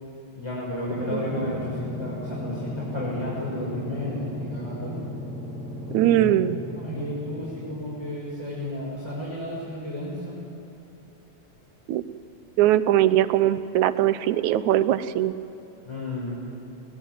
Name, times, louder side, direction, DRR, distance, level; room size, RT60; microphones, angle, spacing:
voice 1, 0.3-4.9 5.9-6.5 6.7-10.4 15.8-16.4, left 1 dB, 10° left, -7 dB, 6.6 m, -32 dB
sound 1, 0.8-8.1, equal, 60° left, 6.6 m, -35 dB
voice 2, 5.9-6.6 11.9-12.0 12.6-15.3, right 12 dB, 80° right, 14 dB, 2.1 m, -21 dB
22.0 x 21.0 x 9.5 m, 3.0 s
omnidirectional pair, 3.3 m